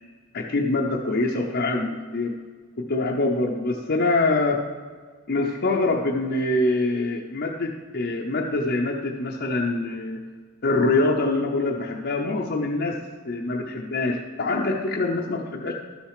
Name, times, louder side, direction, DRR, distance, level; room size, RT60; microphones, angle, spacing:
voice 1, 0.3-2.3 2.8-4.6 5.3-10.2 10.6-13.0 13.3-15.7, left 2 dB, 50° left, -1 dB, 0.7 m, -24 dB
12.0 x 6.4 x 4.9 m, 1.5 s
head